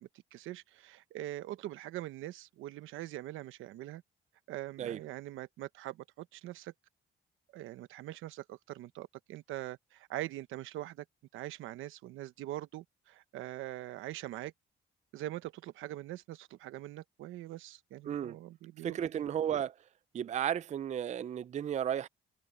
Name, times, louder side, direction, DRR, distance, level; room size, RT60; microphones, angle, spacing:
voice 1, 0.0-4.0 4.5-6.7 7.5-11.0 11.3-14.5 15.1-19.2, right 15 dB, 90° right, 1.0 m, -43 dB
voice 2, 18.1-18.4 18.8-19.7 20.1-22.1, right 9 dB, 35° right, 0.4 m, -33 dB
cardioid pair, 90°, 20 cm